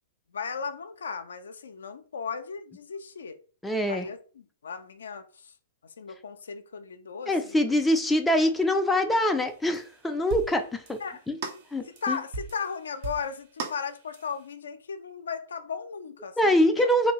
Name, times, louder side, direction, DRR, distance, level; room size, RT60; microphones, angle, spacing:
voice 1, 0.3-3.4 3.9-5.5 6.0-7.8 8.4-8.5 11.0-11.2 11.9-16.9, left 6 dB, 80° left, 0.4 m, -36 dB
voice 2, 3.6-4.1 7.3-11.0 11.3-11.4 11.7-12.2 16.4-17.1, left 1 dB, 5° left, 0.4 m, -24 dB
sound 1, 9.7-10.0 10.3-10.6 10.9-11.1 11.4-12.8 13.0-14.4, right 4 dB, 55° right, 0.7 m, -38 dB
2.7 x 2.6 x 3.0 m
hypercardioid pair, 120°, 0 cm